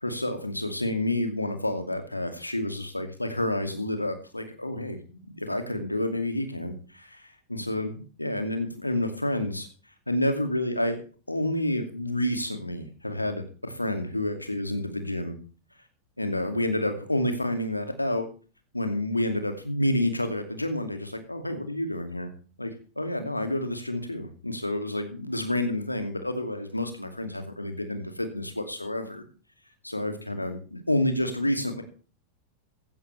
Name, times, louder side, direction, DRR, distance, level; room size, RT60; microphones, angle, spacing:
voice 1, 0.0-9.7 10.1-11.0 11.3-15.4 16.2-18.2 18.7-22.3 22.6-22.7 23.0-29.2 29.8-31.8, left 1 dB, 85° left, 7 dB, 2.5 m, -29 dB
16.0 x 12.5 x 3.4 m, 0.37 s
figure-of-eight pair, 90°, 0 cm